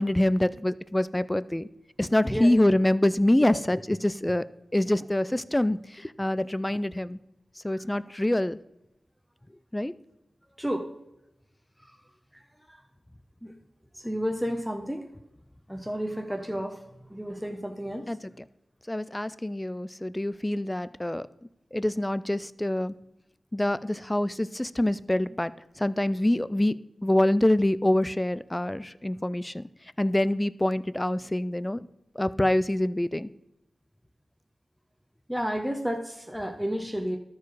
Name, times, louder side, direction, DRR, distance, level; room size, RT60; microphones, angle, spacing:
voice 1, 0.0-1.7 2.0-4.4 4.7-5.8 6.2-7.2 7.6-8.6 9.7-9.9 18.1-18.2 18.9-21.2 21.7-22.9 23.5-25.5 25.8-26.7 27.0-29.6 30.0-31.9 32.2-33.3, left 1 dB, 15° left, 16 dB, 0.4 m, -25 dB
voice 2, 13.9-15.1 15.7-16.8 17.1-18.0 35.3-37.2, equal, ahead, 4 dB, 0.8 m, -31 dB
13.0 x 4.7 x 4.7 m, 0.88 s
wide cardioid pair, 70°, 0 cm